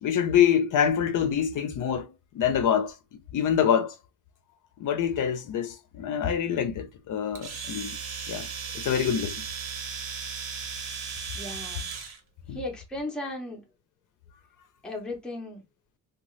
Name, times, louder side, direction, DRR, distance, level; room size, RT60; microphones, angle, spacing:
voice 1, 0.0-2.9 3.3-4.0 4.8-8.0 8.3-8.5 8.7-9.4 12.5-12.6, left 8 dB, 55° left, 0.5 m, -25 dB
Domestic sounds home sounds, 7.4-12.2, right 6 dB, 75° right, 1.1 m, -36 dB
voice 2, 11.3-11.9 12.5-13.6 14.8-15.6, left 1 dB, ahead, 0.5 m, -36 dB
2.7 x 2.3 x 3.0 m
cardioid pair, 170°, 38 cm